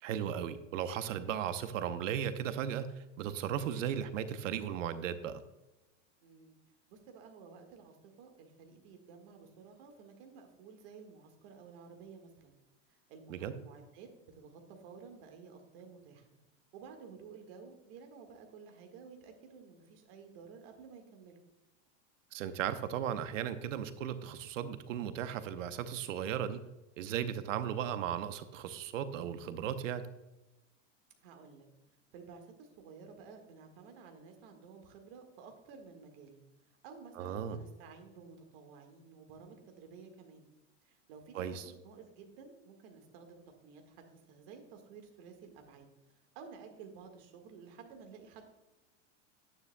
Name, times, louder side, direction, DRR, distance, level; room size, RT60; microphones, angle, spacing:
voice 1, 0.0-5.4 13.3-13.5 22.3-26.6 27.0-30.1 37.2-37.6 41.3-41.6, right 9 dB, 80° right, 11 dB, 0.8 m, -36 dB
voice 2, 6.2-6.5 6.9-12.6 12.9-16.3 16.7-21.4 31.2-31.7 32.1-36.4 36.8-40.5 40.8-45.9 46.4-48.4, right 5 dB, 50° right, 4 dB, 1.7 m, -53 dB
9.7 x 9.6 x 2.2 m, 1.0 s
supercardioid pair, 165°, 38 cm